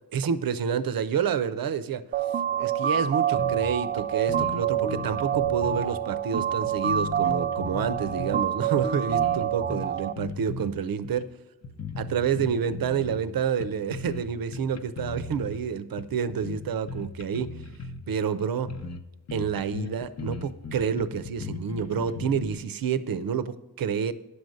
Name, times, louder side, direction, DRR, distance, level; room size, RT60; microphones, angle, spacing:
voice 1, 0.1-2.0 2.6-11.2 12.0-17.5 18.1-18.7 19.3-24.1, right 7 dB, 55° right, 14 dB, 0.7 m, -28 dB
sound 1, 2.1-10.1, right 9 dB, 25° right, 0.4 m, -27 dB
sound 2, 3.4-3.7 4.0-4.1 4.3-5.9 6.4-8.5 8.8-10.7 11.0-11.2 11.6-13.3 13.6-14.2 14.5-15.6 16.0-18.0 18.4-18.5 18.7-19.0 19.3-22.6, left 4 dB, 40° left, 0.8 m, -37 dB
10.0 x 6.4 x 5.3 m, 1.1 s
cardioid pair, 80°, 41 cm